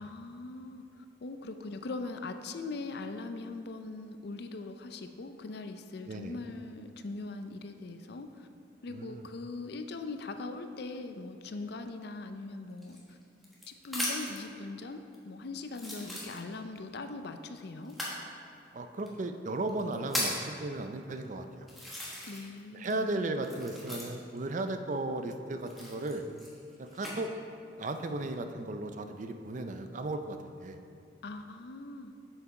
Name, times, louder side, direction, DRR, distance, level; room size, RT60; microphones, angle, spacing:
voice 1, 0.0-8.5 8.8-13.2 13.7-17.9 22.3-23.1 31.2-32.1, left 3 dB, 55° left, 7 dB, 0.5 m, -41 dB
voice 2, 8.9-9.3 18.7-21.7 22.7-26.3 26.8-27.3 27.8-30.8, right 2 dB, 40° right, 7 dB, 0.4 m, -35 dB
sound 1, 12.8-14.4 15.1-15.2 15.7-16.8 17.8-18.2 19.1-19.2 19.7-20.5 21.2-21.3 21.7-22.6 22.8-24.4 25.6-27.2 27.8-28.3, left 1 dB, ahead, 1.3 m, -37 dB
7.2 x 6.7 x 4.8 m, 2.5 s
head